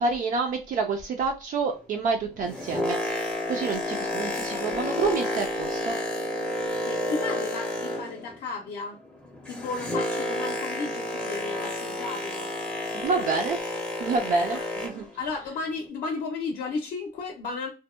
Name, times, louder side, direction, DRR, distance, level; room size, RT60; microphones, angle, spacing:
voice 1, 0.0-3.0 3.5-6.0 12.9-13.6 14.0-15.0, right 4 dB, 55° right, 0.4 m, -28 dB
Boat Water vehicle, 2.3-8.4 8.7-15.1 15.8-15.9, left 1 dB, 5° left, 0.5 m, -31 dB
voice 2, 4.5-5.0 6.8-9.1 9.5-12.5 14.5-14.7 15.2-17.7, left 4 dB, 60° left, 0.5 m, -34 dB
2.6 x 2.1 x 2.3 m
cardioid pair, 170°, 17 cm